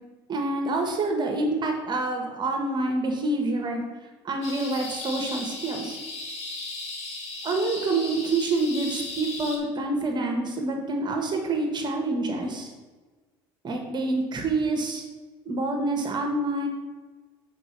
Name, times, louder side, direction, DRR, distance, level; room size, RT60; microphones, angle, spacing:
voice 1, 0.3-3.8 4.2-6.0 7.4-12.7 13.6-15.0 15.4-16.7, right 2 dB, 40° right, 2 dB, 1.4 m, -27 dB
sound 1, 4.4-9.6, left 3 dB, 65° left, 1.6 m, -36 dB
5.2 x 4.9 x 6.0 m, 1.3 s
hypercardioid pair, 75°, 12 cm